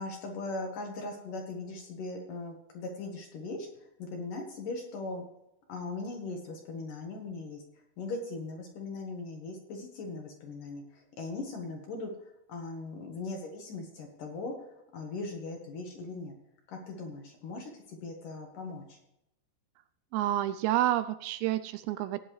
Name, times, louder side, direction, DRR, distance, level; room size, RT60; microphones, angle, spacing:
voice 1, 0.0-3.7 4.0-5.2 5.7-7.6 8.0-16.4 16.7-19.0, left 3 dB, 60° left, 2 dB, 2.5 m, -39 dB
voice 2, 20.1-22.2, right 13 dB, 85° right, 12 dB, 2.6 m, -29 dB
16.0 x 10.0 x 3.2 m, 0.83 s
omnidirectional pair, 5.2 m